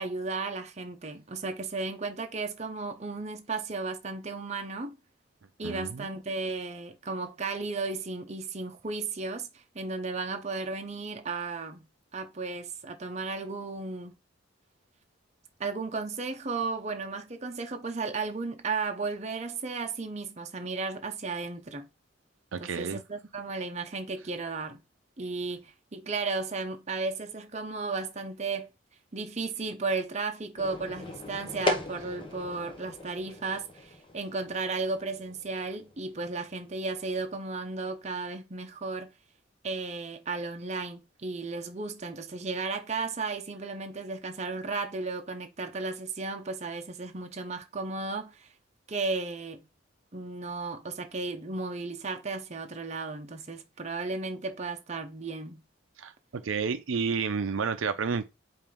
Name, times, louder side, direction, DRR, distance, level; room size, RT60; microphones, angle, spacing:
voice 1, 0.0-5.0 5.6-11.8 12.1-14.2 15.6-21.9 22.6-24.8 25.2-28.7 29.1-39.1 39.6-48.5 48.9-49.6 50.1-55.6, right 3 dB, 35° right, 0.7 m, -34 dB
voice 2, 5.6-6.1 22.5-23.0 56.0-58.3, right 5 dB, 80° right, 0.5 m, -31 dB
sound 1, 30.6-37.2, left 2 dB, 25° left, 0.8 m, -38 dB
5.0 x 2.6 x 3.6 m
head